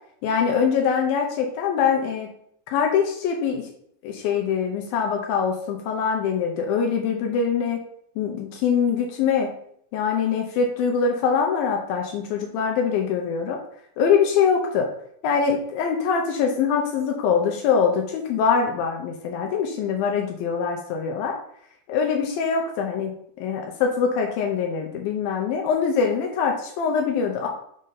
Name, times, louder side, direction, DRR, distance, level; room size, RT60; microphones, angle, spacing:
voice 1, 0.2-2.3 2.7-3.7 4.0-7.8 8.2-9.5 9.9-13.6 14.0-14.9 15.2-21.4 21.9-23.1 23.4-27.5, left 6 dB, 80° left, 2 dB, 2.2 m, -23 dB
6.4 x 2.6 x 5.5 m, 0.67 s
omnidirectional pair, 4.8 m